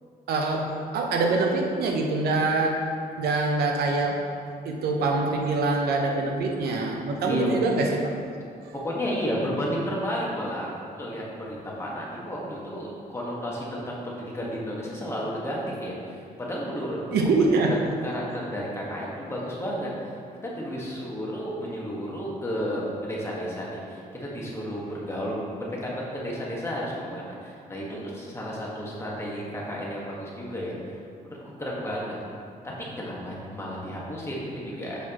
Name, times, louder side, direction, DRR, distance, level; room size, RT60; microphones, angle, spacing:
voice 1, 0.3-2.8 3.2-4.2 4.6-8.1 8.6-8.7 17.1-17.7, right 3 dB, 90° right, 1 dB, 0.8 m, -24 dB
voice 2, 8.8-10.7 11.0-17.4 17.7-20.1 20.4-30.7 31.2-32.2 32.8-35.0, equal, 15° left, -5 dB, 1.5 m, -32 dB
6.9 x 6.1 x 3.0 m, 2.4 s
cardioid pair, 115°, 16 cm